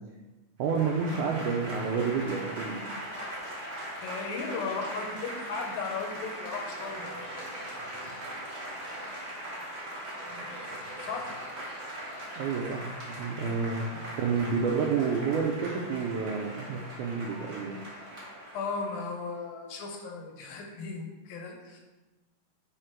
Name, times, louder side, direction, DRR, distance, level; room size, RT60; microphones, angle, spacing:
Applause / Crowd, 0.6-19.1, equal, 40° right, 1.0 m, -40 dB
voice 1, 0.6-2.9 12.4-17.8, right 5 dB, 90° right, -1 dB, 1.7 m, -30 dB
voice 2, 4.0-7.1 11.0-11.4 18.5-21.8, left 4 dB, 90° left, 1 dB, 2.7 m, -36 dB
5.1 x 5.0 x 4.4 m, 1.1 s
omnidirectional pair, 4.1 m